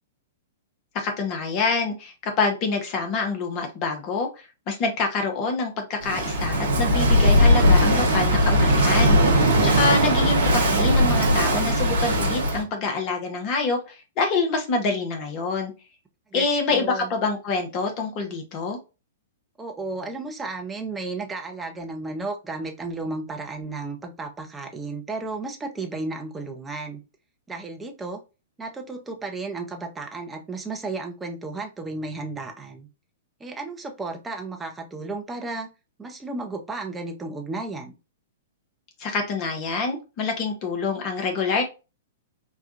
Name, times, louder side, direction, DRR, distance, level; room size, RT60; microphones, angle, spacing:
voice 1, 0.9-4.3 4.7-15.7 16.3-18.8 39.0-41.6, left 4 dB, 35° left, 4 dB, 0.8 m, -26 dB
Walk footsteps / Wind / Waves surf, 6.0-12.6, equal, 65° right, 0.8 m, -19 dB
voice 2, 16.3-17.1 19.6-27.0 27.5-28.2 28.6-32.9 33.4-35.7 36.0-37.9, right 3 dB, 10° right, 2 dB, 0.8 m, -33 dB
4.3 x 2.3 x 2.4 m, 0.29 s
figure-of-eight pair, 105°, 0 cm